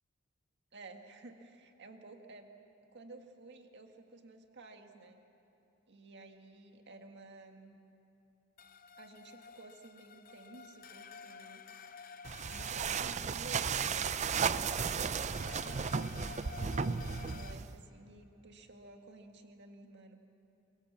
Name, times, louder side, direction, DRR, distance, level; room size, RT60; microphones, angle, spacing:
voice 1, 0.7-2.5 2.9-5.2 5.9-7.8 9.0-12.1 12.5-20.2, right 2 dB, 55° right, 4 dB, 1.8 m, -53 dB
sound 1, 8.6-17.5, left 6 dB, 45° left, 0.7 m, -52 dB
sound 2, 12.2-17.8, right 6 dB, 35° right, 0.5 m, -34 dB
24.5 x 21.5 x 7.4 m, 2.9 s
head